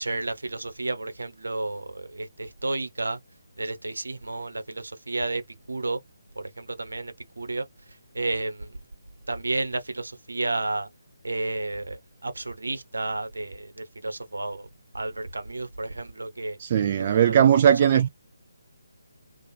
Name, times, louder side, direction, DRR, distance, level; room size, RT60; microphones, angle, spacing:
voice 1, 0.0-3.2 3.6-5.4 5.7-6.0 6.3-7.7 8.1-8.7 9.3-10.9 11.2-14.7 14.9-16.6 17.0-17.3 17.6-17.7, right 2 dB, 65° right, 1.1 m, -31 dB
voice 2, 16.6-18.1, right 9 dB, 30° right, 0.4 m, -19 dB
3.4 x 2.5 x 4.2 m
figure-of-eight pair, 145°, 0 cm